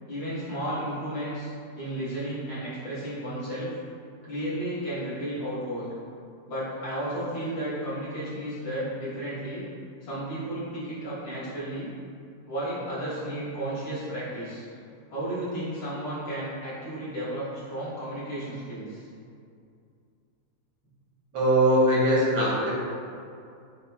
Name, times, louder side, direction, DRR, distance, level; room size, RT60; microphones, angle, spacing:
voice 1, 0.1-1.5 1.8-3.7 4.2-5.9 6.5-9.6 10.0-11.9 12.5-14.6 15.1-19.0, right 1 dB, 65° left, -12 dB, 1.8 m, -33 dB
voice 2, 21.3-22.7, equal, 80° right, -6 dB, 1.6 m, -21 dB
5.5 x 2.0 x 2.3 m, 2.4 s
omnidirectional pair, 2.0 m